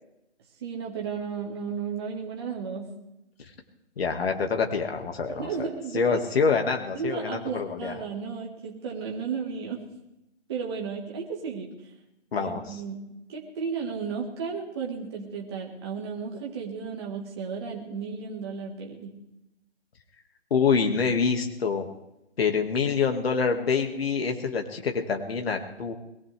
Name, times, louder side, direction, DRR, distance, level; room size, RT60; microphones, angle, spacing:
voice 1, 0.6-2.9 5.3-6.2 6.9-9.8 10.5-11.7 12.4-13.0 13.3-19.1, right 6 dB, 20° right, -1 dB, 1.7 m, -34 dB
voice 2, 4.0-5.7 5.9-8.0 12.3-12.8 20.5-21.9 22.4-25.9, left 5 dB, 55° left, 3 dB, 2.1 m, -26 dB
22.0 x 19.0 x 3.4 m, 0.88 s
hypercardioid pair, 170°, 35 cm